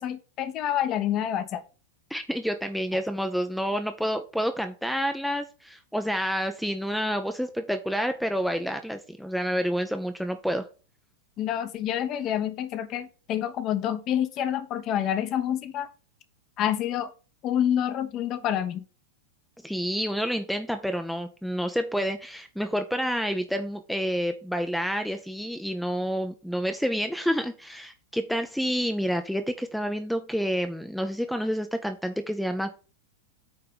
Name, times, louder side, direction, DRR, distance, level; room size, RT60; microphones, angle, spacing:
voice 1, 0.0-1.6 11.4-15.9 16.6-17.1 17.4-18.8, left 10 dB, 35° left, 11 dB, 0.9 m, -28 dB
voice 2, 2.1-10.7 19.6-32.7, equal, ahead, 7 dB, 0.6 m, -29 dB
8.7 x 3.3 x 5.3 m, 0.35 s
figure-of-eight pair, 90°, 0 cm